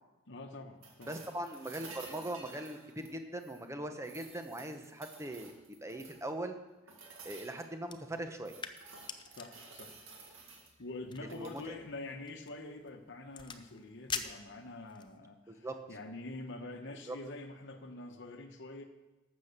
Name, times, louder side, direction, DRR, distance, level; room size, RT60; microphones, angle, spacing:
voice 1, 0.3-1.2 9.4-10.0 10.8-18.8, left 2 dB, 55° left, 5 dB, 1.1 m, -46 dB
sound 1, 0.8-3.7 4.0-6.3 6.9-7.7 8.1-10.7 11.2-11.7 13.7-13.8, right 4 dB, 70° right, 2.2 m, -53 dB
voice 2, 1.1-5.5 5.8-6.6 7.2-8.6 11.3-11.8 15.5-15.7 17.1-17.2, right 1 dB, 15° right, 6 dB, 0.9 m, -40 dB
sound 2, 7.8-15.2, left 6 dB, 20° left, 0.6 m, -46 dB
12.5 x 7.4 x 6.7 m, 1.1 s
head